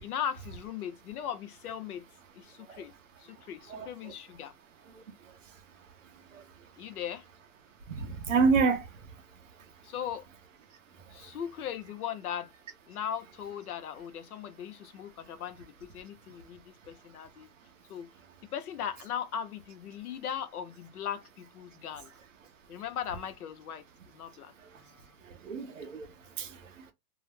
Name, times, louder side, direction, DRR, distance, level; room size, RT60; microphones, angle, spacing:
voice 1, 0.0-2.1 2.4-2.9 3.2-4.5 6.8-7.2 9.8-10.3 11.1-12.5 12.9-17.5 17.9-18.1 18.5-22.1 22.7-23.8 24.1-25.1, left 9 dB, 65° left, 0.6 m, -38 dB
voice 2, 7.9-8.8 25.4-26.1 26.4-26.5, right 4 dB, 50° right, 0.5 m, -27 dB
2.3 x 2.0 x 3.1 m
hypercardioid pair, 180°, 49 cm